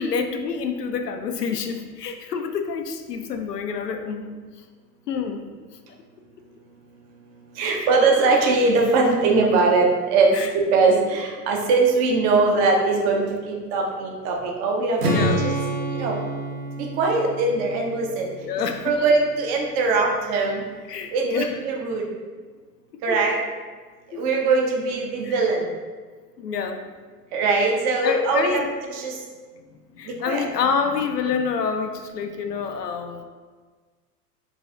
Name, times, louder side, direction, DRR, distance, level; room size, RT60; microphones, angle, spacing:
voice 1, 0.0-4.3 5.1-5.4 7.7-7.9 10.3-10.5 15.1-15.4 18.4-19.1 20.9-21.6 23.1-23.2 24.1-24.2 25.2-25.3 26.4-26.8 28.0-28.7 30.0-33.2, left 6 dB, 80° left, 6 dB, 0.6 m, -27 dB
voice 2, 7.6-10.3 10.7-15.5 16.0-16.2 16.8-18.3 18.8-20.6 21.1-22.0 23.0-23.4 24.1-25.6 27.3-28.6 28.9-29.1 30.0-30.4, right 3 dB, 20° right, 0 dB, 0.3 m, -21 dB
Strum, 15.0-19.1, right 1 dB, 75° right, 0.9 m, -28 dB
4.1 x 2.3 x 3.7 m, 1.4 s
figure-of-eight pair, 85°, 47 cm